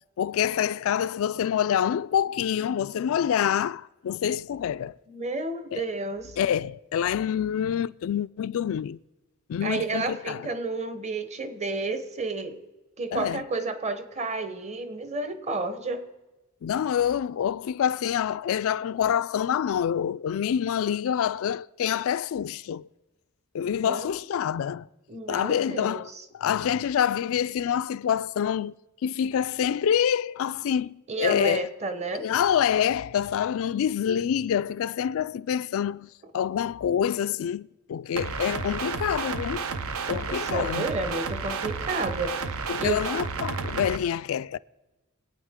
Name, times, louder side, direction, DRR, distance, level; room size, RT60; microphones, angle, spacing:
voice 1, 0.2-4.9 5.7-5.8 6.4-9.0 9.5-10.5 13.1-13.4 16.6-22.9 23.5-24.9 25.3-26.1 26.3-28.7 29.0-31.7 32.2-39.7 40.1-40.9 42.7-44.6, left 9 dB, 65° left, 0.3 m, -26 dB
voice 2, 5.1-6.4 9.6-12.6 13.0-16.1 23.8-24.2 25.1-26.2 31.1-32.3 40.1-43.0, right 3 dB, 30° right, 1.0 m, -31 dB
sound 1, 38.2-44.0, right 5 dB, 75° right, 0.7 m, -31 dB
24.0 x 8.8 x 3.7 m
head